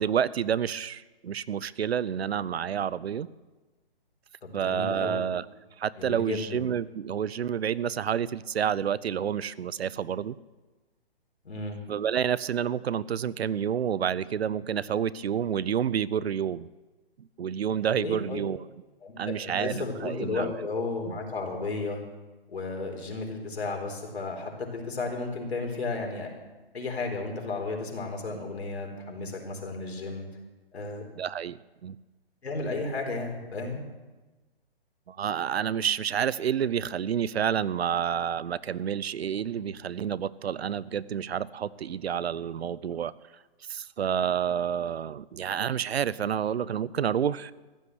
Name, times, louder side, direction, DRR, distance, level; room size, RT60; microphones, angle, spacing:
voice 1, 0.0-3.3 4.5-5.4 5.8-10.4 11.9-16.7 17.2-18.6 19.2-20.5 21.1-21.2 31.2-32.0 35.1-43.1 43.7-47.5, right 8 dB, 85° right, 20 dB, 0.6 m, -29 dB
voice 2, 4.4-5.2 6.0-6.7 11.4-11.8 18.0-18.4 19.0-22.0 22.5-26.3 26.7-30.2 30.7-31.0 32.4-33.8, left 3 dB, 85° left, 1 dB, 4.0 m, -33 dB
15.0 x 8.5 x 8.0 m, 1.2 s
hypercardioid pair, 175°, 31 cm